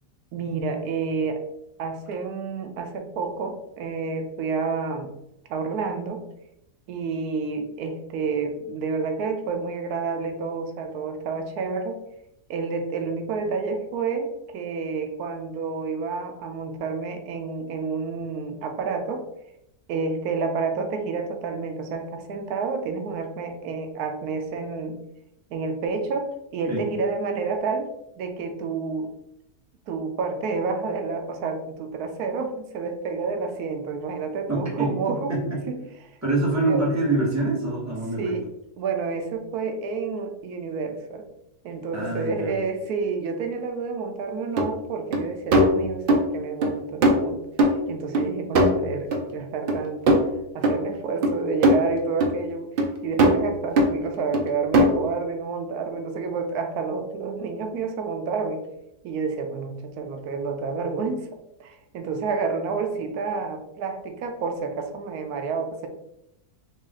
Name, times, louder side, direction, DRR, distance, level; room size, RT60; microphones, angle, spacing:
voice 1, 0.3-1.4 1.8-5.1 5.5-6.2 6.9-12.0 12.5-19.2 19.9-25.0 25.5-27.9 28.2-29.1 29.9-35.4 35.7-35.8 36.7-36.9 38.2-38.5 38.8-41.2 41.6-50.2 50.5-52.7 53.0-58.6 59.0-61.3 61.6-65.9, right 4 dB, 85° right, 5 dB, 1.1 m, -29 dB
voice 2, 34.5-35.6 36.2-38.4 41.9-42.5, right 2 dB, 10° right, -5 dB, 1.0 m, -25 dB
sound 1, 44.6-44.7 45.1-45.2 45.5-46.3 46.6-46.7 47.0-48.3 48.5-49.3 49.7-49.8 50.1-50.3 50.6-50.8 51.2-51.8 52.2-52.3 52.8-52.9 53.2-53.5 53.8-53.9 54.3-54.4 54.7-55.1, right 1 dB, 60° right, 0.5 m, -19 dB
4.1 x 2.4 x 3.6 m, 0.82 s
omnidirectional pair, 1.6 m